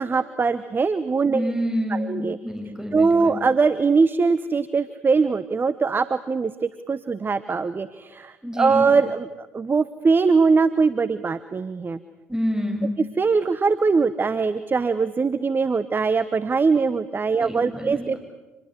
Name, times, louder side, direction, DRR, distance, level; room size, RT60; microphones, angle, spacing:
voice 1, 0.0-1.5 1.9-2.4 2.9-12.0 13.0-18.2, right 4 dB, 30° right, 14 dB, 1.0 m, -22 dB
voice 2, 1.3-3.4 8.4-8.9 12.3-13.0 17.4-18.1, equal, 5° right, 2 dB, 7.8 m, -28 dB
26.5 x 21.0 x 8.2 m, 1.1 s
hypercardioid pair, 55°, 7 cm